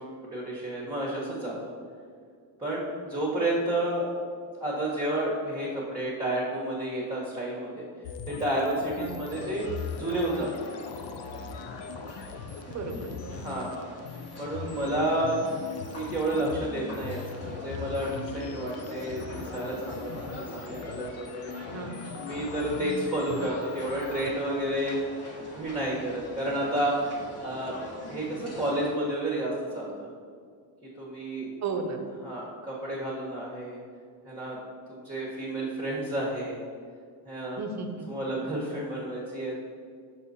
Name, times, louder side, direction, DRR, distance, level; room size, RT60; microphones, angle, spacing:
voice 1, 0.0-1.7 2.6-4.1 4.5-7.8 8.3-10.6 13.4-13.7 14.4-15.4 15.8-20.2 20.5-21.5 22.1-25.0 25.5-26.9 27.4-27.8 28.1-30.1 30.9-31.5 32.2-33.8 34.2-34.6 34.9-36.6 37.2-37.6 38.1-39.6, right 1 dB, 10° right, -6 dB, 1.1 m, -31 dB
sound 1, 8.0-24.3, left 6 dB, 80° left, 0.6 m, -40 dB
voice 2, 9.0-9.3 12.7-13.5 21.7-22.2 31.6-32.1 37.6-38.1 38.3-38.4, right 4 dB, 40° right, 5 dB, 0.7 m, -35 dB
sound 2, 9.2-28.9, equal, 35° left, 1.2 m, -44 dB
6.3 x 3.8 x 4.1 m, 2.1 s
cardioid pair, 110°, 45 cm